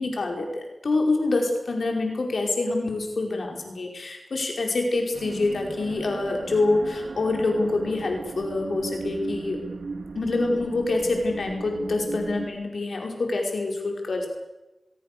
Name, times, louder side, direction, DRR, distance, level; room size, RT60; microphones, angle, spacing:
voice 1, 0.0-9.6 10.1-14.3, left 2 dB, 85° left, 2 dB, 5.0 m, -26 dB
sound 1, 5.1-12.5, right 4 dB, 90° right, 1.9 m, -37 dB
24.5 x 21.5 x 6.9 m, 1.0 s
wide cardioid pair, 55°, 0 cm